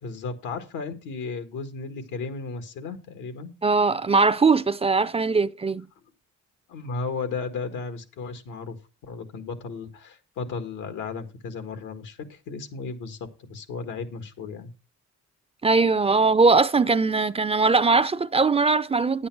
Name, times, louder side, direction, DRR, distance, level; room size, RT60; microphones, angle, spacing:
voice 1, 0.0-3.5 6.7-8.8 9.0-14.7, left 4 dB, 90° left, 1.7 m, -34 dB
voice 2, 3.6-5.9 15.6-19.3, right 4 dB, 20° right, 0.4 m, -20 dB
9.7 x 8.6 x 4.6 m
cardioid pair, 90°, 30 cm